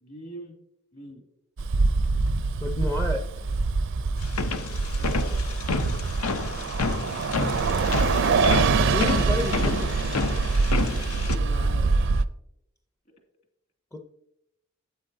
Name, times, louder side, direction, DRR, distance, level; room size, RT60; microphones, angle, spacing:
voice 1, 0.0-0.5 0.9-1.2 4.9-5.4 7.2-8.3 11.1-11.9, right 1 dB, 45° left, 2 dB, 2.4 m, -43 dB
Bus, 1.6-12.2, right 4 dB, 60° right, 0.4 m, -24 dB
voice 2, 2.6-3.3 8.8-10.1 13.9-14.1, left 1 dB, 15° left, 6 dB, 0.5 m, -31 dB
sound 1, 4.2-11.4, left 4 dB, 85° left, 0.7 m, -30 dB
12.5 x 8.7 x 2.7 m, 0.80 s
head